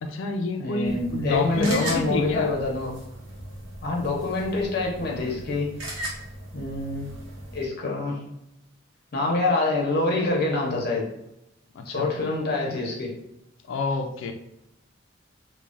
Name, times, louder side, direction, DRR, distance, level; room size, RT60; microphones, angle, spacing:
voice 1, 0.0-2.6 7.8-8.2 11.8-12.1 13.7-14.3, left 3 dB, 75° left, 5 dB, 0.3 m, -28 dB
voice 2, 0.6-2.9 3.8-5.7 6.5-7.1 7.5-8.2 9.1-11.0 11.8-13.1, left 2 dB, 55° left, -1 dB, 0.7 m, -26 dB
sound 1, 0.8-7.6, right 1 dB, 80° right, 0.8 m, -38 dB
3.1 x 2.1 x 2.5 m, 0.85 s
head